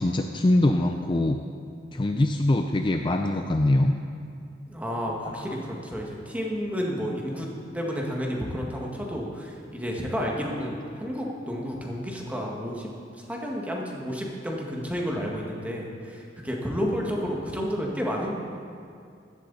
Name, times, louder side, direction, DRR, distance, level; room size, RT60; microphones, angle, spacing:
voice 1, 0.0-1.4 1.9-3.9 5.3-5.4, left 1 dB, 25° left, 5 dB, 0.5 m, -23 dB
voice 2, 4.7-12.9 13.2-18.3, equal, 10° right, -2 dB, 1.7 m, -31 dB
15.0 x 12.0 x 4.1 m, 2.4 s
head